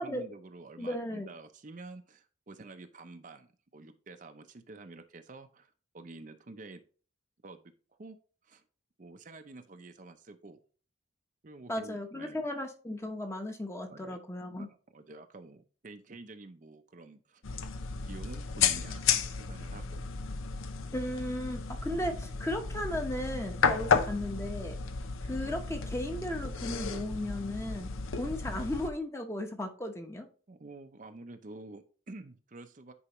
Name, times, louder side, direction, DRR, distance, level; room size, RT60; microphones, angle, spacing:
voice 1, 0.0-6.8 7.4-7.6 7.9-8.2 8.4-8.6 9.0-10.6 11.4-12.4 13.9-14.2 14.6-17.4 18.1-20.1 30.5-32.9, right 2 dB, 40° right, 7 dB, 0.6 m, -49 dB
voice 2, 0.8-1.3 11.7-14.7 20.9-24.7 25.2-27.9 28.2-30.3, left 1 dB, 15° left, 4 dB, 0.9 m, -35 dB
sound 1, 17.4-28.9, left 5 dB, 85° left, 0.6 m, -33 dB
9.8 x 4.7 x 3.0 m, 0.39 s
head